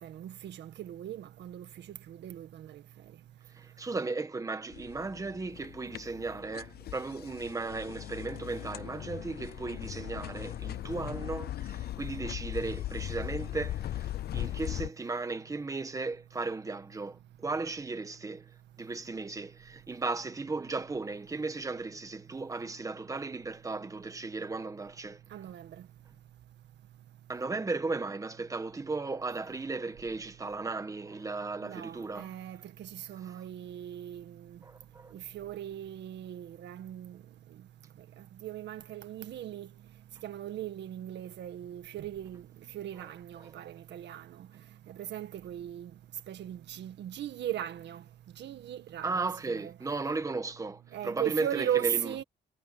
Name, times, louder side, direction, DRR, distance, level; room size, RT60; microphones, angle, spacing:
voice 1, 0.0-2.8 25.3-25.7 31.6-34.6 35.1-37.2 38.2-39.7 40.2-42.5 42.7-44.5 44.9-45.9 46.3-48.0 48.4-49.7 50.9-52.2, right 11 dB, 80° right, 1.8 m, -38 dB
voice 2, 3.6-18.5 18.8-25.2 27.3-32.3 34.6-35.1 43.4-43.5 49.0-52.1, right 3 dB, 20° right, 1.5 m, -36 dB
sound 1, 4.7-14.9, left 13 dB, 65° left, 0.6 m, -39 dB
cardioid pair, 125°, 18 cm